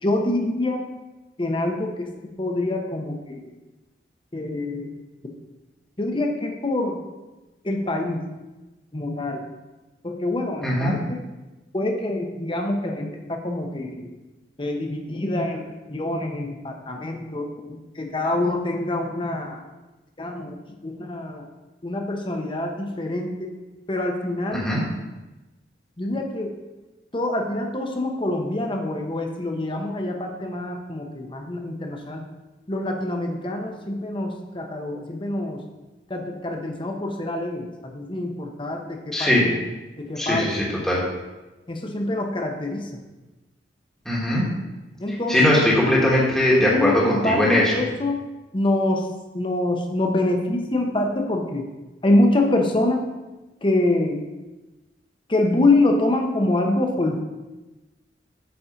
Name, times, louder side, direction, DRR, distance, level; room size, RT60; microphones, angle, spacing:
voice 1, 0.0-0.8 1.4-2.1 2.4-3.1 4.3-4.9 6.0-7.0 7.6-8.2 8.9-9.4 10.0-11.2 11.7-13.9 14.6-15.6 15.9-17.4 18.0-19.6 20.2-20.5 20.8-21.4 21.8-23.5 23.9-24.7 26.0-26.5 27.1-32.2 32.7-35.6 36.1-39.5 40.0-40.7 41.7-42.9 45.0-45.8 46.6-48.2 48.5-49.0 49.3-51.6 52.0-53.0 53.6-54.2 55.3-57.2, left 2 dB, 30° left, 2 dB, 0.9 m, -25 dB
voice 2, 10.6-10.9 24.5-24.8 39.1-39.5 40.2-41.0 44.0-44.4 45.1-47.7, left 1 dB, 5° left, -6 dB, 1.4 m, -20 dB
8.7 x 4.3 x 5.1 m, 1.1 s
head